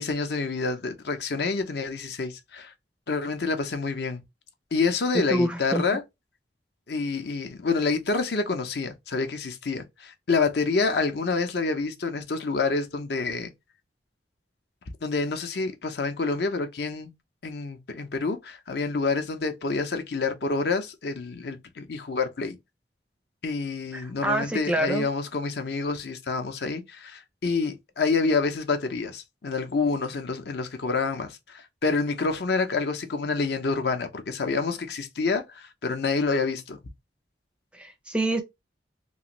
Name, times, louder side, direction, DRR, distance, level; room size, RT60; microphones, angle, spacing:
voice 1, 0.0-2.7 3.1-4.2 4.7-6.0 6.9-13.5 15.0-17.1 17.4-22.6 23.4-36.8, left 4 dB, 65° left, 0.6 m, -28 dB
voice 2, 5.3-5.8 23.9-25.1 37.7-38.4, right 1 dB, 5° right, 0.4 m, -27 dB
3.0 x 2.5 x 2.9 m
head